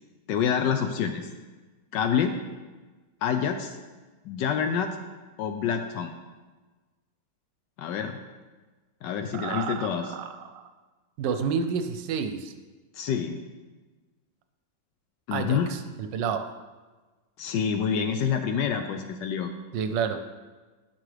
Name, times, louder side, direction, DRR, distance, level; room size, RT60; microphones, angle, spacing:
voice 1, 0.3-1.3 1.9-2.3 3.2-3.7 4.2-5.0 5.4-6.1 7.8-8.1 9.0-10.1 13.0-13.4 15.3-15.7 17.4-19.5, left 7 dB, 75° left, 6 dB, 1.1 m, -27 dB
voice 2, 9.3-10.7 11.2-12.5 15.3-16.5 19.7-20.2, right 6 dB, 75° right, 8 dB, 1.2 m, -30 dB
11.5 x 6.1 x 3.3 m, 1.3 s
omnidirectional pair, 2.1 m